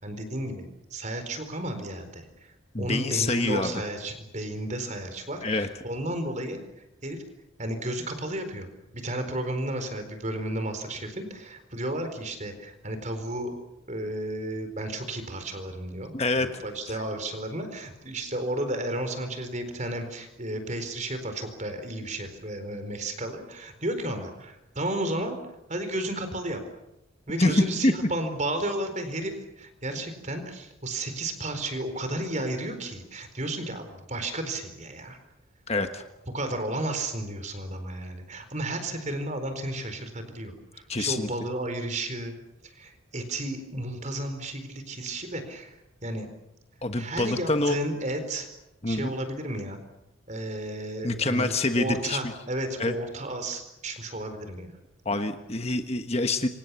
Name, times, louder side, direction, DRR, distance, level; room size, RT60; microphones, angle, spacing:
voice 1, 0.0-6.6 7.0-7.2 7.6-8.7 8.9-13.5 13.9-25.4 25.7-26.6 27.3-35.2 36.3-42.3 42.6-46.3 47.0-48.5 48.9-49.8 50.3-54.8, right 1 dB, 35° right, 8 dB, 4.3 m, -33 dB
voice 2, 2.7-3.8 5.4-5.7 16.1-16.5 27.4-27.9 35.7-36.0 40.9-41.3 46.8-47.8 48.8-49.1 51.0-52.2 52.8-53.0 55.0-56.5, left 2 dB, 30° left, 7 dB, 1.3 m, -26 dB
27.5 x 25.0 x 7.1 m, 0.90 s
head